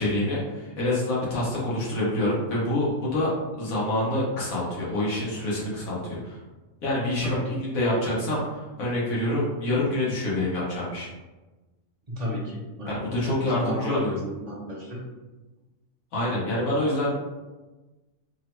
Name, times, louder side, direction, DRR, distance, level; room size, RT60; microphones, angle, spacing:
voice 1, 0.0-3.3 3.6-6.4 6.8-11.1 12.9-14.2 16.1-17.1, left 1 dB, 90° left, -6 dB, 1.4 m, -26 dB
voice 2, 12.1-15.0, equal, 40° right, -4 dB, 0.7 m, -33 dB
3.4 x 2.1 x 3.0 m, 1.2 s
omnidirectional pair, 1.4 m